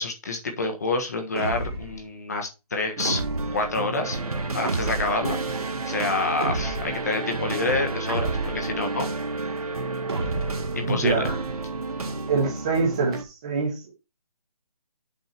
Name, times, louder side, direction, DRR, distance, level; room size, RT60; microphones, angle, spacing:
voice 1, 0.0-3.2 3.5-4.2 4.5-9.1 10.7-11.3, left 3 dB, 25° left, 1.4 m, -28 dB
sound 1, 1.4-2.0 3.0-3.7 4.6-5.3 6.4-7.0 8.1-8.8 10.1-10.7, right 3 dB, 45° right, 1.6 m, -31 dB
sound 2, 3.0-13.2, right 3 dB, 75° right, 1.9 m, -31 dB
voice 2, 10.9-11.4 12.3-13.9, right 4 dB, 10° right, 1.2 m, -25 dB
7.9 x 5.6 x 4.4 m
hypercardioid pair, 180°, 19 cm